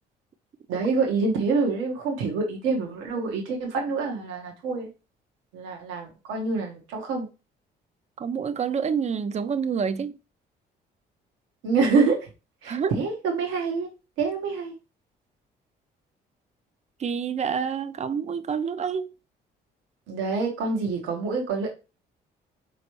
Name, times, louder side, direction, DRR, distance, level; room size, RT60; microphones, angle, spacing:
voice 1, 0.7-4.9 5.5-7.3 11.6-12.3 12.6-13.9 14.2-14.7 20.1-21.7, right 4 dB, 85° right, 1.1 m, -26 dB
voice 2, 8.2-10.2 12.7-13.0 17.0-19.1, right 6 dB, 35° right, 0.5 m, -28 dB
4.2 x 3.2 x 3.0 m
supercardioid pair, 65°, 20 cm